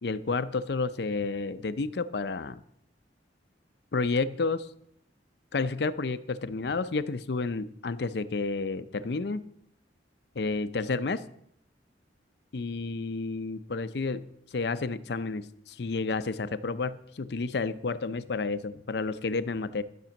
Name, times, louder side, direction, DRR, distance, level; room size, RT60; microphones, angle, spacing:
voice 1, 0.0-2.6 3.9-4.7 5.5-9.5 10.4-11.2 12.5-19.8, left 3 dB, 65° left, 13 dB, 0.6 m, -31 dB
12.0 x 6.1 x 7.0 m, 0.74 s
head